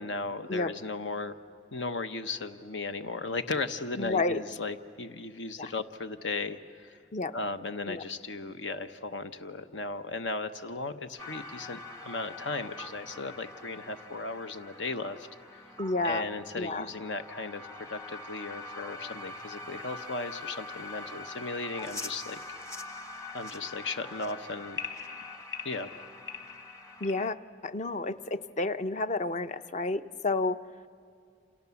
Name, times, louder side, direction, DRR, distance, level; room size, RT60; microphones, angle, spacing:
voice 1, 0.0-1.3 1.7-7.0 7.3-15.3 16.0-22.4 23.3-24.8 25.6-25.9, left 3 dB, 85° left, 9 dB, 1.0 m, -36 dB
voice 2, 4.0-4.4 5.6-5.7 7.1-7.3 7.9-8.0 15.8-16.3 16.6-16.9 27.0-27.4 27.6-30.6, left 3 dB, 40° left, 12 dB, 0.7 m, -30 dB
sound 1, 11.2-27.3, left 3 dB, 15° left, 1.0 m, -43 dB
29.0 x 27.5 x 7.1 m, 2.4 s
head